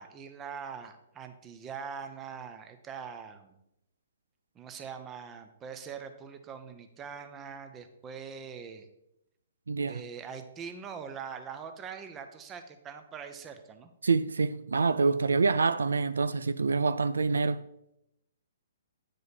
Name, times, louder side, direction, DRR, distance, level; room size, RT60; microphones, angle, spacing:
voice 1, 0.0-3.6 4.5-8.9 9.8-13.9, right 6 dB, 20° right, 0.8 m, -43 dB
voice 2, 9.7-10.0 14.0-17.6, right 4 dB, 90° right, 0.3 m, -26 dB
9.4 x 5.0 x 4.2 m
hypercardioid pair, 140°, 0 cm